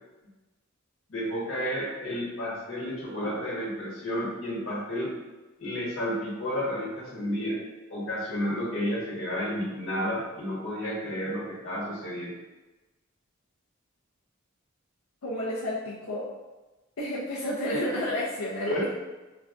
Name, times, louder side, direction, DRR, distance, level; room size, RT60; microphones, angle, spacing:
voice 1, 1.1-5.1 5.6-7.6 7.9-12.4 18.7-18.9, equal, 65° left, -6 dB, 1.4 m, -31 dB
voice 2, 15.2-16.3 17.0-18.9, left 1 dB, 90° left, -7 dB, 0.6 m, -31 dB
4.9 x 2.3 x 2.4 m, 1.2 s
head